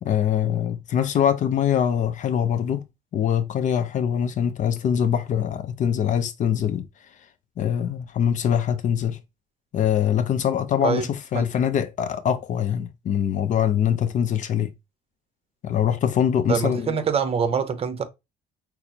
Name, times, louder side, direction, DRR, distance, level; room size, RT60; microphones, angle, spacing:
voice 1, 0.0-2.8 3.1-6.9 7.6-9.2 9.7-14.7 15.6-17.0, left 9 dB, 50° left, 0.5 m, -23 dB
voice 2, 16.5-18.0, right 6 dB, 35° right, 0.7 m, -24 dB
5.9 x 2.0 x 2.7 m
cardioid pair, 110°, 17 cm